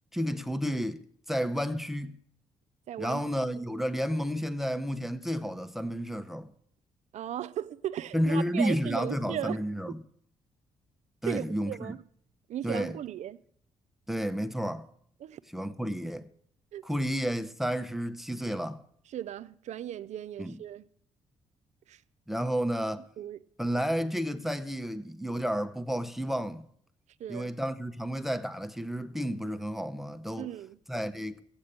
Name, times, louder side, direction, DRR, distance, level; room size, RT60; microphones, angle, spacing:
voice 1, 0.1-2.2 3.0-6.5 8.1-10.0 11.2-11.9 12.6-12.9 14.1-14.9 15.5-16.2 16.8-18.8 20.4-20.6 22.3-23.1 23.6-26.6 27.3-30.5 30.9-31.4, equal, ahead, 0.7 m, -31 dB
voice 2, 2.9-3.2 7.1-9.6 11.2-12.0 12.5-13.4 15.2-15.4 16.7-16.9 19.1-20.9 21.9-22.0 23.2-23.4 27.2-27.5 30.4-30.8, right 11 dB, 70° right, 0.5 m, -36 dB
14.0 x 8.8 x 6.6 m
cardioid pair, 75°, 13 cm